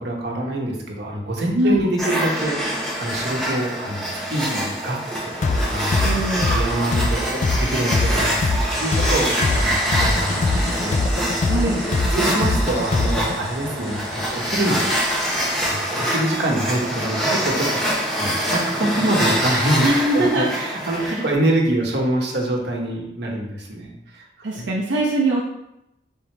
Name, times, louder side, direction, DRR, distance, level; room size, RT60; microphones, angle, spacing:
voice 1, 0.0-6.0 6.3-11.7 12.1-14.9 15.7-19.9 20.1-24.2 24.5-24.7, right 1 dB, 70° right, -1 dB, 0.9 m, -25 dB
voice 2, 1.5-1.9 6.0-6.6 11.4-11.8 19.8-20.5 20.9-21.2 24.4-25.4, right 1 dB, 85° right, -4 dB, 0.6 m, -22 dB
sound 1, 2.0-21.3, equal, ahead, 0.8 m, -25 dB
sound 2, 5.4-13.3, left 3 dB, 40° left, 0.3 m, -22 dB
sound 3, 8.7-15.7, equal, 25° left, 1.5 m, -33 dB
3.7 x 2.9 x 4.4 m, 0.86 s
head